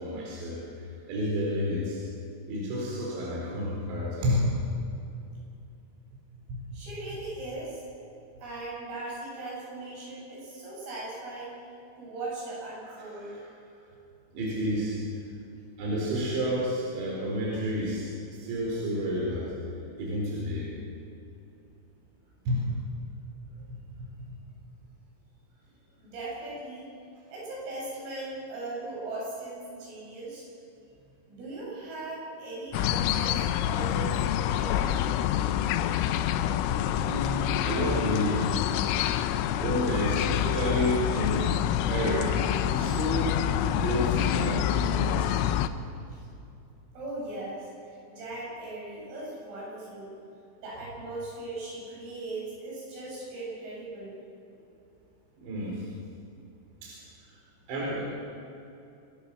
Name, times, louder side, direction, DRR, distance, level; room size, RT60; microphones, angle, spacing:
voice 1, 0.0-2.0 2.5-4.5 6.5-6.6 12.8-13.4 14.3-15.0 15.8-19.5 20.0-20.7 22.5-22.8 23.7-23.8 36.9-38.5 39.6-41.6 41.9-45.9 55.4-55.8 56.8-57.0 57.3-57.4 57.7-58.0, equal, 65° right, -5 dB, 6.4 m, -30 dB
voice 2, 6.7-7.8 8.4-11.6 12.0-13.4 26.0-26.9 27.3-30.5 31.3-35.1 46.1-46.2 47.0-47.7 48.1-50.1 50.6-54.2, right 2 dB, 85° right, -5 dB, 10.5 m, -38 dB
sound 1, 32.7-45.7, left 11 dB, 85° left, 3.3 m, -27 dB
26.5 x 20.5 x 6.0 m, 2.7 s
omnidirectional pair, 5.7 m